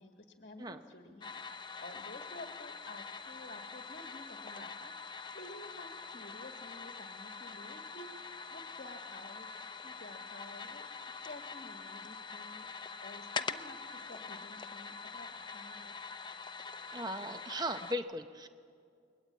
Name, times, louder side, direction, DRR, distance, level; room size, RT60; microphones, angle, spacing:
voice 1, 0.0-1.3 1.8-4.9 5.3-10.9 11.2-15.9, left 2 dB, 45° left, 4 dB, 1.4 m, -51 dB
sound 1, 1.2-17.9, left 5 dB, 25° left, 0.6 m, -44 dB
voice 2, 16.9-18.5, equal, 20° right, 8 dB, 0.7 m, -37 dB
29.0 x 21.5 x 8.5 m, 2.3 s
head